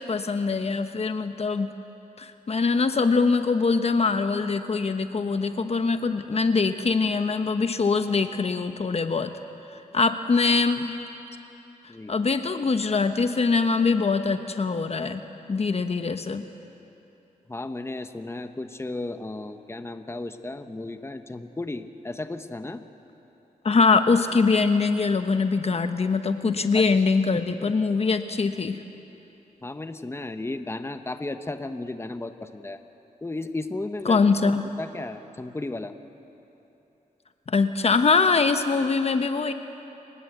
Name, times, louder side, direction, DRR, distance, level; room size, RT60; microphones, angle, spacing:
voice 1, 0.0-1.7 2.2-9.3 9.9-11.0 12.1-15.2 15.5-16.4 23.6-28.8 34.1-34.6 37.5-39.5, left 4 dB, 45° left, 8 dB, 1.1 m, -23 dB
voice 2, 17.5-22.8 26.7-26.9 27.3-27.7 29.6-32.8 33.2-35.9, left 2 dB, 15° left, 8 dB, 1.1 m, -34 dB
29.5 x 19.5 x 8.1 m, 3.0 s
cardioid pair, 75°, 14 cm